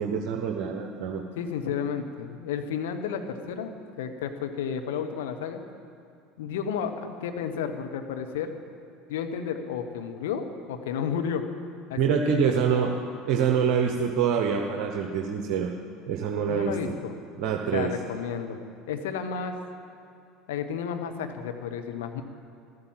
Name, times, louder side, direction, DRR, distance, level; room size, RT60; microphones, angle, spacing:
voice 1, 0.0-1.2 12.0-13.0 13.3-15.7 16.1-16.7 17.4-17.9, right 7 dB, 55° right, 3 dB, 0.9 m, -25 dB
voice 2, 1.3-5.6 6.4-8.5 9.1-11.4 11.9-13.0 16.5-17.2 17.7-18.6 18.9-19.6 20.5-22.2, left 7 dB, 70° left, 6 dB, 1.1 m, -32 dB
14.0 x 12.5 x 7.5 m, 2.4 s
figure-of-eight pair, 70°, 0 cm